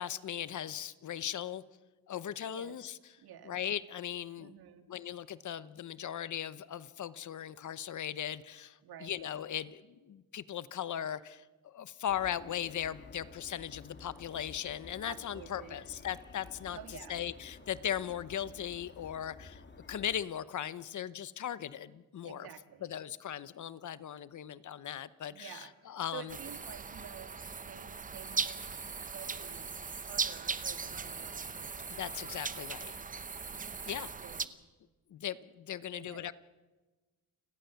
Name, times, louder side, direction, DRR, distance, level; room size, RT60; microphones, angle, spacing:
voice 1, 0.0-1.6 2.1-3.0 3.4-4.5 4.9-16.8 17.1-19.6 19.9-22.5 22.8-26.3 31.9-33.0 33.8-34.1 35.1-36.3, left 10 dB, 50° left, 16 dB, 0.9 m, -38 dB
voice 2, 3.2-3.5 4.4-4.9 8.8-9.2 15.0-15.8 16.7-17.2 22.2-22.9 25.3-27.4 27.7-28.7 29.0-31.8 34.2-34.6 35.9-36.3, right 10 dB, 70° right, 9 dB, 1.9 m, -50 dB
sound 1, 12.1-20.2, left 4 dB, 30° left, 2.1 m, -52 dB
sound 2, 26.3-34.5, right 5 dB, 20° right, 0.8 m, -39 dB
30.0 x 17.5 x 7.0 m, 1.2 s
cardioid pair, 135°, 38 cm